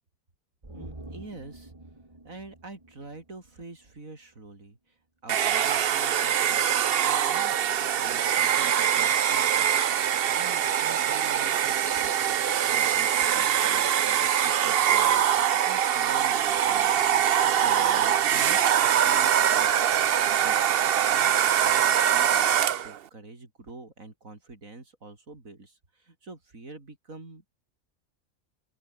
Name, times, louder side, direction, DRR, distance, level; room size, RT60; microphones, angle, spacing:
sound 1, 0.6-4.0 4.3-4.4, right 2 dB, 20° right, 2.5 m, -47 dB
voice 1, 0.7-1.7 2.2-9.7 10.3-12.4 12.7-17.1 17.5-19.9 20.3-20.6 21.1-27.5, right 3 dB, 90° right, 4.7 m, -46 dB
Domestic sounds home sounds, 5.3-23.0, right 9 dB, 55° right, 0.8 m, -23 dB
open air
omnidirectional pair, 1.4 m